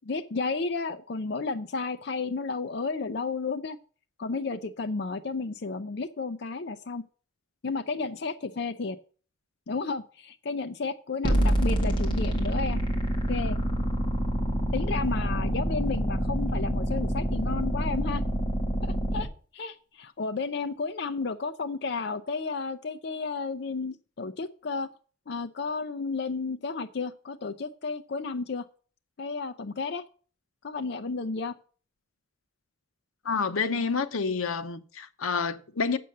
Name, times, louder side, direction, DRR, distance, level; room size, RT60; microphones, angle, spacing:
voice 1, 0.1-3.8 4.2-7.0 7.6-9.0 9.7-12.8 13.3-13.6 14.7-18.2 18.8-19.3 19.5-24.9 25.3-28.7 29.2-30.0 30.6-31.6, left 4 dB, 55° left, 0.5 m, -32 dB
sound 1, 11.2-19.2, equal, 25° left, 2.0 m, -27 dB
voice 2, 33.2-36.0, left 5 dB, 85° left, 0.8 m, -28 dB
7.7 x 6.8 x 7.7 m
head